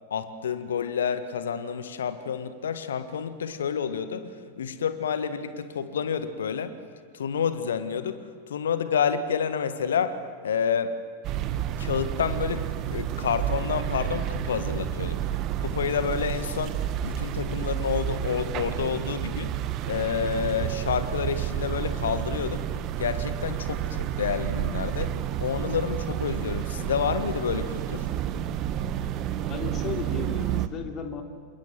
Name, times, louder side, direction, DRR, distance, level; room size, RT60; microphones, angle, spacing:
voice 1, 0.1-6.7 7.1-10.2 10.4-10.9 11.8-15.2 15.6-16.8 17.0-19.5 19.8-22.6 23.0-25.1 25.4-28.1, left 7 dB, 65° left, 11 dB, 1.7 m, -29 dB
sound 1, 11.2-30.7, right 11 dB, 35° right, 1.4 m, -30 dB
voice 2, 29.4-31.2, left 6 dB, 30° left, 4 dB, 3.6 m, -35 dB
28.5 x 27.0 x 7.5 m, 2.1 s
figure-of-eight pair, 90°, 0 cm